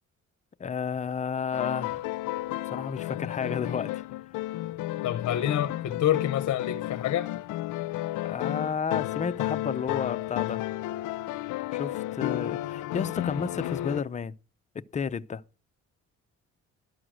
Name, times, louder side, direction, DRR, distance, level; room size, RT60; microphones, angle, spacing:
voice 1, 0.6-2.1 2.7-4.0 8.3-10.6 11.7-14.3 14.7-15.4, left 6 dB, 25° left, 0.5 m, -32 dB
sound 1, 1.5-14.0, left 16 dB, 90° left, 0.5 m, -32 dB
voice 2, 5.0-7.3, left 11 dB, 60° left, 0.8 m, -27 dB
12.5 x 6.3 x 6.1 m
cardioid pair, 90°, 30 cm